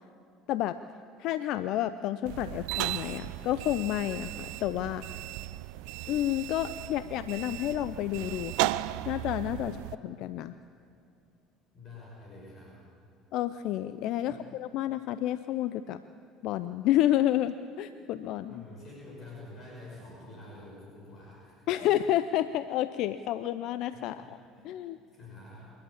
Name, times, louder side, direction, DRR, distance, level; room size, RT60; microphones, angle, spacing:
voice 1, 1.2-5.0 6.1-8.7 9.0-9.8 10.0-10.5 13.3-16.0 16.4-18.6 21.7-24.4 24.6-25.0, left 13 dB, 65° left, 13 dB, 0.6 m, -30 dB
sound 1, 2.3-10.0, right 18 dB, 70° right, 0.5 m, -36 dB
voice 2, 11.7-12.8 14.1-14.5 18.5-21.9 23.9-24.7 25.1-25.7, left 2 dB, 45° left, -4 dB, 6.1 m, -48 dB
27.0 x 11.5 x 8.7 m, 2.6 s
hypercardioid pair, 70°, 0 cm